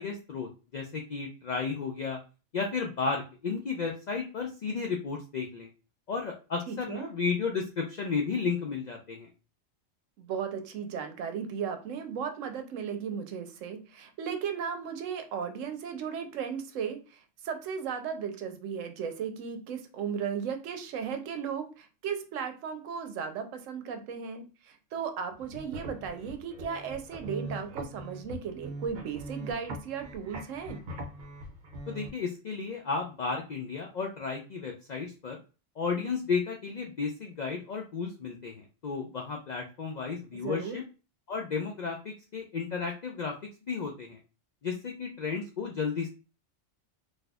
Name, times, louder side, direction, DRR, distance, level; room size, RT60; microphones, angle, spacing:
voice 1, 0.0-2.2 2.5-5.7 6.1-9.3 31.9-35.4 35.8-40.8 41.3-43.3 43.7-44.2 44.6-46.1, left 5 dB, 70° left, 2 dB, 0.4 m, -33 dB
voice 2, 6.7-7.1 10.2-30.8 40.4-40.8, right 7 dB, 85° right, 7 dB, 1.0 m, -36 dB
sound 1, 25.3-32.1, right 1 dB, 55° right, 0.6 m, -42 dB
4.1 x 2.6 x 2.3 m, 0.33 s
omnidirectional pair, 1.3 m